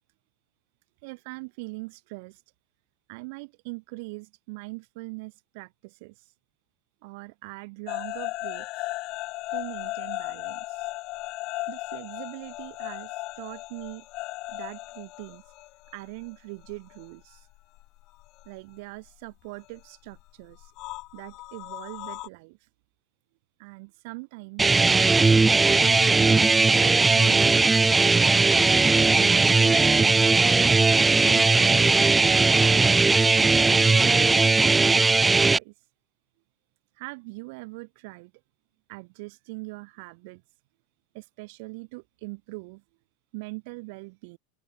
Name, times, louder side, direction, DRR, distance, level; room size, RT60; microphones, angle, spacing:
voice 1, 1.0-2.4 3.1-6.3 7.0-8.7 9.5-10.9 11.7-14.1 14.5-15.4 15.9-17.5 18.5-20.7 21.1-22.6 23.6-24.7 25.4-26.5 26.8-28.2 28.9-30.5 31.2-32.7 33.7-35.7 37.0-38.3 38.9-40.4 41.1-42.8 43.3-44.4, right 28 dB, 65° right, 6.9 m, -41 dB
sound 1, 7.9-17.1 17.3-18.6 19.7-22.3, left 20 dB, 50° left, 1.6 m, -36 dB
sound 2, 24.6-35.6, right 3 dB, 15° right, 0.4 m, -19 dB
open air
supercardioid pair, 115°, 0 cm